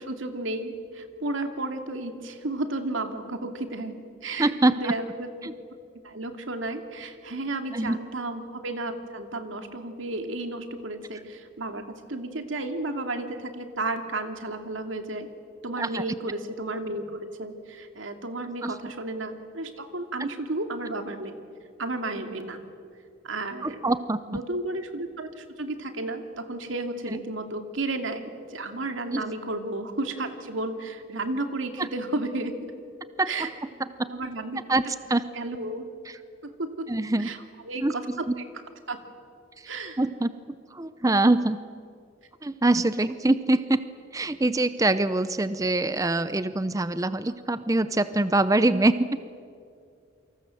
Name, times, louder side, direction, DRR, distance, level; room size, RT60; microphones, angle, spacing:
voice 1, 0.0-5.5 6.0-15.3 15.6-21.4 21.8-22.6 23.2-23.8 24.3-32.7 33.3-33.5 34.1-34.6 35.3-35.9 36.4-36.9 37.2-37.4 37.7-38.3 38.9-39.0 39.7-40.0, right 2 dB, 90° right, 6 dB, 2.5 m, -33 dB
voice 2, 4.4-4.9 5.4-5.5 7.7-8.0 15.8-16.0 18.6-18.8 20.2-20.3 23.6-24.2 27.1-27.2 29.1-29.2 31.8-31.9 33.2-33.5 33.8-34.1 34.7-35.3 36.1-36.2 36.9-37.3 37.8-38.4 39.6-39.7 40.0-41.6 42.4-43.8 44.1-48.9, right 2 dB, 15° right, 13 dB, 0.6 m, -24 dB
28.0 x 25.5 x 7.7 m, 2.3 s
head